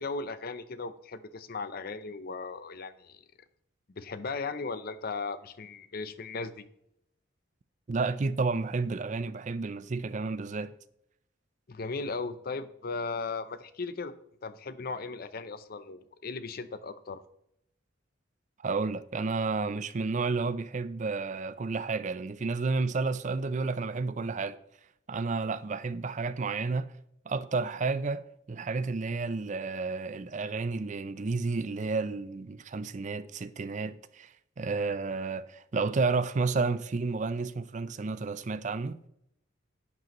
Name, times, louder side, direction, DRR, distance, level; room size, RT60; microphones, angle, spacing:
voice 1, 0.0-3.2 4.0-6.7 11.7-14.1 14.4-17.2, left 4 dB, 50° left, 0.6 m, -37 dB
voice 2, 7.9-10.7 18.6-24.6 25.1-26.9 27.3-28.2 28.5-39.0, right 4 dB, 40° right, 0.4 m, -31 dB
11.0 x 7.8 x 3.0 m
head